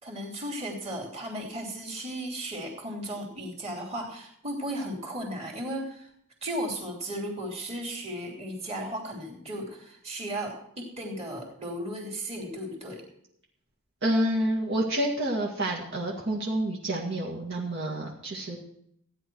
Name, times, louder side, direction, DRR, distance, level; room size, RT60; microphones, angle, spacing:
voice 1, 0.0-6.1 6.4-13.0, right 1 dB, 30° right, -2 dB, 3.1 m, -35 dB
voice 2, 14.0-18.6, right 1 dB, 55° right, -3 dB, 2.1 m, -28 dB
16.0 x 10.0 x 4.6 m, 0.71 s
head